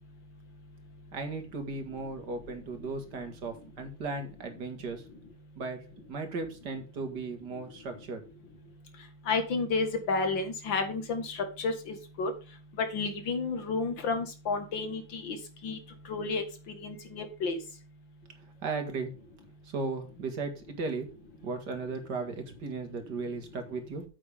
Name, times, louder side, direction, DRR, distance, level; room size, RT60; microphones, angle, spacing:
voice 1, 1.1-5.0 5.6-5.8 6.1-8.2 18.6-19.1 19.7-21.1 21.4-24.0, right 3 dB, 60° right, 6 dB, 2.4 m, -36 dB
voice 2, 9.3-12.3 12.9-15.4 15.6-15.8 16.1-16.4 16.8-17.6, left 4 dB, 80° left, 7 dB, 2.4 m, -31 dB
9.2 x 7.5 x 3.6 m, 0.33 s
omnidirectional pair, 2.0 m